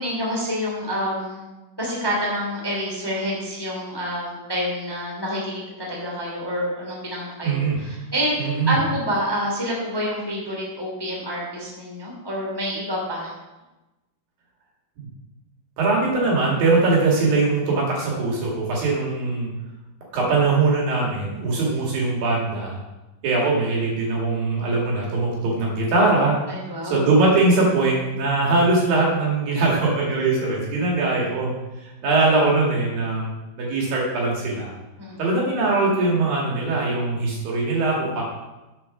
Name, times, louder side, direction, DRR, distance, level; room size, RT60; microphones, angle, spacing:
voice 1, 0.0-1.4 1.8-13.3 26.5-27.0 35.0-35.3, equal, 5° left, -4 dB, 2.0 m, -28 dB
voice 2, 7.4-7.8 8.4-8.8 15.0-15.1 15.8-19.5 20.1-22.8 23.2-26.4 26.8-31.5 31.8-34.7 35.2-38.2, right 3 dB, 65° right, -3 dB, 3.9 m, -21 dB
7.8 x 7.7 x 6.1 m, 1.1 s
omnidirectional pair, 4.5 m